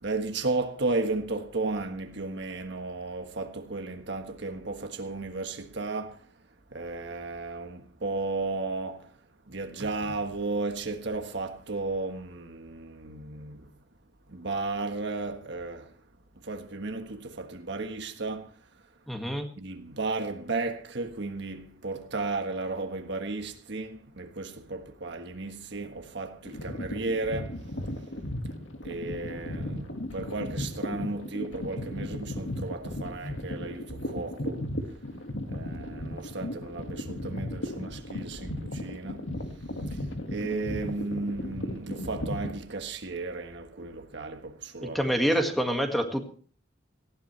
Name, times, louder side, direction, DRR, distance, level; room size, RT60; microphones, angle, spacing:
voice 1, 0.0-6.3 6.7-9.1 9.5-13.7 14.3-15.9 16.4-18.5 19.6-27.7 28.8-34.7 35.5-39.3 39.9-45.0, right 3 dB, 60° right, 1.4 m, -34 dB
voice 2, 19.1-19.5 44.9-46.3, equal, ahead, 1.9 m, -26 dB
sound 1, 26.5-42.6, left 1 dB, 80° left, 2.0 m, -36 dB
19.0 x 15.5 x 3.3 m
head